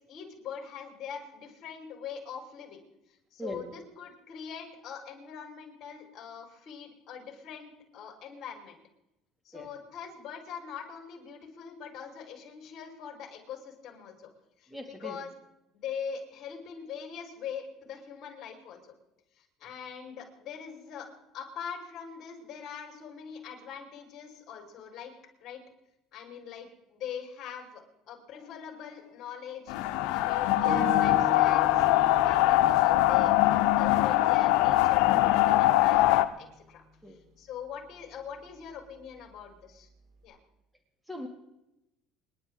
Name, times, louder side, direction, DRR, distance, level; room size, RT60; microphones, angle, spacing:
voice 1, 0.0-2.8 3.3-8.8 9.4-14.3 14.6-15.3 15.7-18.9 19.4-21.1 21.3-25.1 25.4-25.6 26.1-29.7 30.1-31.9 32.2-36.8 37.1-39.9 40.2-40.4, left 7 dB, 50° left, 2 dB, 5.0 m, -42 dB
voice 2, 14.7-15.2 37.0-37.2 41.1-41.3, equal, 5° right, 3 dB, 2.6 m, -39 dB
sound 1, 29.7-36.2, left 15 dB, 80° left, 0.8 m, -22 dB
sound 2, 30.6-35.8, right 1 dB, 75° right, 5.5 m, -40 dB
29.0 x 11.0 x 3.9 m, 0.89 s
cardioid pair, 110°, 0 cm